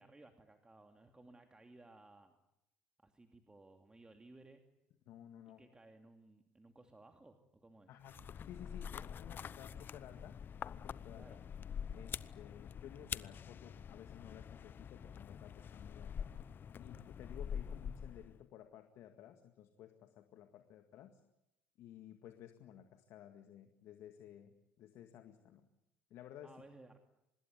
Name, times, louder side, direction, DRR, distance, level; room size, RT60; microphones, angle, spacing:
voice 1, 0.0-2.4 3.0-4.6 5.5-7.9 11.1-11.4 26.4-27.0, right 2 dB, 15° right, 5 dB, 2.7 m, -60 dB
voice 2, 5.1-5.6 7.9-11.4 11.9-16.3 16.8-21.2 21.8-25.7 26.1-26.5, left 10 dB, 60° left, 7 dB, 2.0 m, -55 dB
sound 1, 8.0-18.4, left 7 dB, 40° left, 0.9 m, -46 dB
25.5 x 20.5 x 9.6 m, 0.86 s
hypercardioid pair, 65°, 5 cm